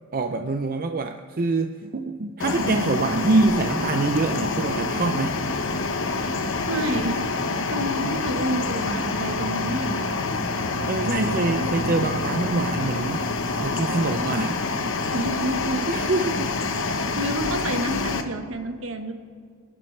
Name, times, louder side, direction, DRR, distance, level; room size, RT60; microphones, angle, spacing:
voice 1, 0.1-5.4 10.8-13.2 13.6-14.6 15.9-16.5 17.1-17.2, right 3 dB, 40° right, 6 dB, 0.5 m, -25 dB
sound 1, 2.4-18.2, left 3 dB, 60° left, 1.1 m, -27 dB
voice 2, 6.7-7.2 7.7-10.1 11.5-11.8 15.1-15.8 17.0-19.1, right 1 dB, 65° right, 6 dB, 1.3 m, -29 dB
25.5 x 11.5 x 3.3 m, 2.2 s
head